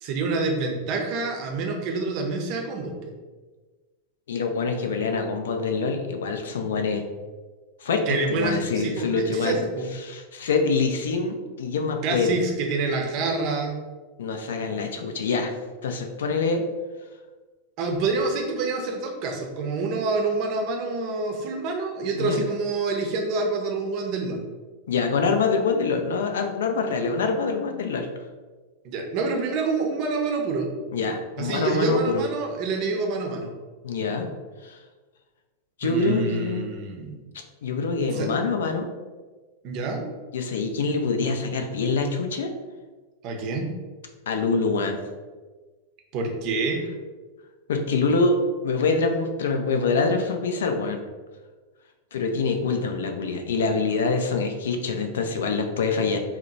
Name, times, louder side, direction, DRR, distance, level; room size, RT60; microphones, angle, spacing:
voice 1, 0.0-3.1 8.1-9.9 12.0-13.8 17.8-24.4 28.8-30.7 31.4-33.5 35.8-37.2 38.1-38.3 39.6-40.0 43.2-43.7 46.1-46.8, right 3 dB, 40° right, 2 dB, 0.6 m, -27 dB
voice 2, 4.3-7.0 7.8-9.7 10.0-12.4 14.2-15.5 15.8-16.6 22.2-22.4 24.9-28.1 30.9-32.2 33.8-34.3 34.6-34.8 35.8-36.7 37.6-38.9 40.3-42.5 44.3-45.0 47.7-51.0 52.1-56.2, left 4 dB, 65° left, 5 dB, 0.4 m, -25 dB
2.9 x 2.1 x 3.8 m, 1.3 s
figure-of-eight pair, 90°, 0 cm